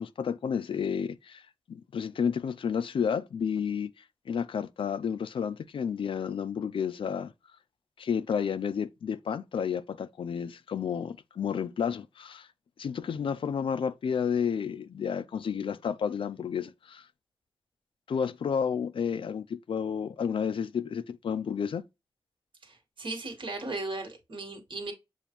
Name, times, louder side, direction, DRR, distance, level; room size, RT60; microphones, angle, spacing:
voice 1, 0.0-1.4 1.7-3.9 4.3-7.3 8.0-12.5 12.8-17.1 18.1-21.8, left 7 dB, 80° left, 0.4 m, -31 dB
voice 2, 22.6-24.9, right 2 dB, 70° right, 1.5 m, -37 dB
7.0 x 2.4 x 2.9 m
wide cardioid pair, 120°, 9 cm